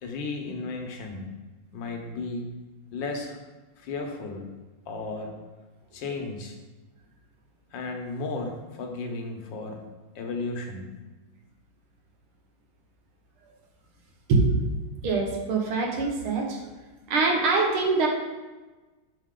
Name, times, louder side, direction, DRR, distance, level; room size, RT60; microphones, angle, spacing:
voice 1, 0.0-1.3 1.7-2.5 2.9-3.4 3.8-4.5 4.9-5.4 5.9-6.6 7.7-9.8 10.1-10.9, left 3 dB, 65° left, 3 dB, 1.5 m, -34 dB
voice 2, 15.0-16.6 17.1-18.1, right 4 dB, 75° right, 1 dB, 2.0 m, -24 dB
6.6 x 5.7 x 3.7 m, 1.2 s
omnidirectional pair, 2.3 m